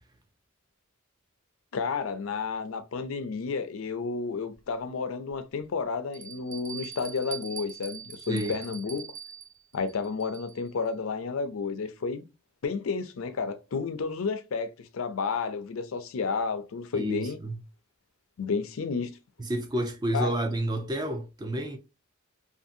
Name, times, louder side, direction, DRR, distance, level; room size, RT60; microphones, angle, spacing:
voice 1, 1.7-9.1 9.7-12.2 12.6-17.4 18.4-19.1 20.1-20.3, left 5 dB, 75° left, 0.4 m, -31 dB
Bell, 4.5-4.6 5.3-5.4 6.1-10.7, right 7 dB, 75° right, 0.5 m, -43 dB
voice 2, 8.3-8.6 16.9-17.6 19.4-21.8, right 1 dB, 20° right, 0.4 m, -30 dB
2.6 x 2.5 x 2.5 m
head